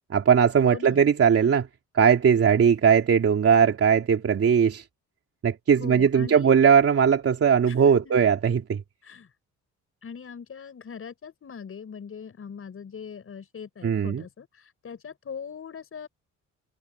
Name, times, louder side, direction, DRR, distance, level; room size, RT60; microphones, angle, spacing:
voice 1, 0.1-1.7 1.9-4.8 5.4-8.8 13.8-14.2, right 7 dB, 50° right, 3.1 m, -19 dB
voice 2, 0.6-1.0 5.7-6.6 7.6-8.2 9.0-9.3 10.0-16.1, left 6 dB, 45° left, 6.2 m, -41 dB
cardioid pair, 90°, 30 cm